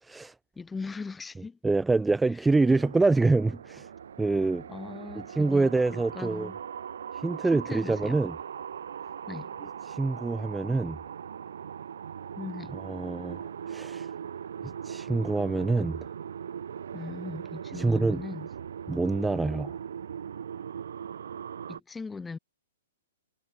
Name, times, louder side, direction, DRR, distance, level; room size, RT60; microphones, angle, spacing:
voice 1, 0.0-0.3 1.6-3.9 4.2-4.6 5.3-6.5 7.1-8.4 9.9-11.0 12.9-14.1 14.8-16.0 17.7-18.2 18.9-19.7, right 3 dB, 5° right, 0.8 m, -26 dB
voice 2, 0.6-1.6 2.3-2.5 4.4-6.6 7.5-8.2 9.3-9.5 12.4-12.8 16.9-18.5 21.7-22.4, left 4 dB, 10° left, 3.6 m, -39 dB
sound 1, 2.5-21.8, right 8 dB, 75° right, 1.4 m, -40 dB
hypercardioid pair, 130°, 0 cm